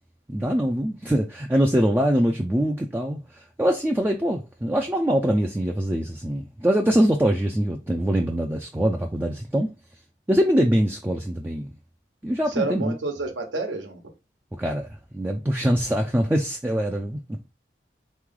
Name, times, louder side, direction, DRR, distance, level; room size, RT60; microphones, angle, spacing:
voice 1, 0.3-9.7 10.3-11.7 12.2-12.9 14.6-14.9 15.1-17.2, equal, 10° right, 0.3 m, -23 dB
voice 2, 12.5-14.1, right 3 dB, 90° right, 1.2 m, -29 dB
3.7 x 3.1 x 3.6 m
head